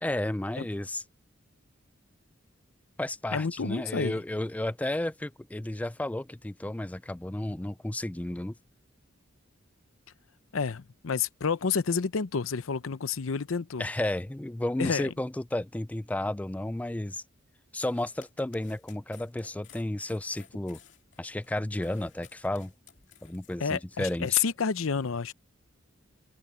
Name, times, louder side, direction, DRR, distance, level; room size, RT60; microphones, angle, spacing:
voice 1, 0.0-1.0 3.0-8.5 13.8-17.2 17.7-20.8 21.2-22.7 23.2-24.4, left 1 dB, 5° left, 0.3 m, -32 dB
voice 2, 3.3-4.2 10.5-13.9 14.8-15.1 23.6-25.3, left 6 dB, 90° left, 0.7 m, -29 dB
sound 1, 17.8-23.6, left 8 dB, 60° left, 2.5 m, -56 dB
head